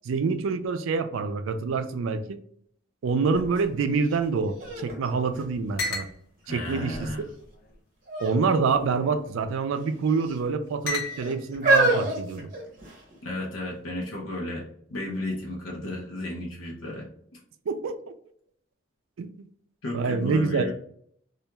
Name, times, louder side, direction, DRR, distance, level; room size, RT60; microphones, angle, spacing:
voice 1, 0.0-2.4 3.0-6.1 6.5-7.1 8.2-12.5 17.7-17.9 19.2-19.5 19.9-20.7, right 4 dB, 75° right, 9 dB, 0.3 m, -26 dB
sound 1, 3.3-4.9 5.2-5.3 5.8-6.2 6.9-7.7 8.6-9.0 9.9-10.3 10.9-11.5, left 3 dB, 45° left, 0.4 m, -36 dB
sound 2, 4.1-4.2 4.6-6.1 6.7-7.2 8.1-8.4 8.7-8.9 9.7-10.4 11.1-13.1 13.9-14.0, right 2 dB, 40° right, 0.7 m, -27 dB
voice 2, 6.4-7.3 13.2-17.4 19.8-20.7, left 1 dB, 90° left, -2 dB, 0.7 m, -34 dB
2.4 x 2.2 x 2.9 m, 0.65 s
head